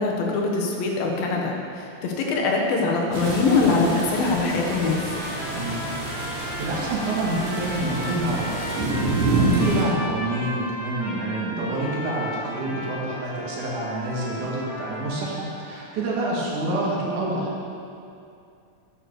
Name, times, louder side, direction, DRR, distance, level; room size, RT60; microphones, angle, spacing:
voice 1, 0.0-5.1 9.9-10.0, left 3 dB, 80° left, 0 dB, 3.1 m, -23 dB
sound 1, 3.1-9.8, right 2 dB, 80° right, 4.2 m, -27 dB
sound 2, 4.6-15.6, left 1 dB, 50° left, 3.5 m, -35 dB
voice 2, 5.6-5.9 6.3-8.6 9.3-17.5, right 2 dB, 60° right, -4 dB, 3.2 m, -27 dB
9.1 x 8.8 x 6.8 m, 2.5 s
omnidirectional pair, 4.1 m